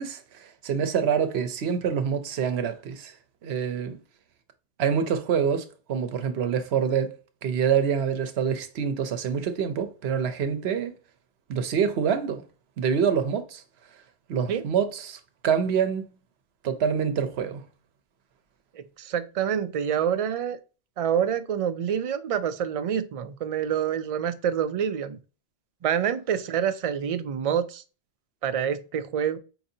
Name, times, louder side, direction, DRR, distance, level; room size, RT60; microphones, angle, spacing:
voice 1, 0.0-3.1 3.4-4.0 4.8-7.2 7.4-10.9 11.5-12.4 12.8-13.6 14.3-16.1 16.6-17.6, right 7 dB, 80° right, 0.9 m, -26 dB
voice 2, 18.7-20.6 21.0-25.2 25.8-27.8 28.4-29.4, right 8 dB, 55° right, 0.4 m, -27 dB
4.7 x 2.7 x 2.6 m
omnidirectional pair, 1.1 m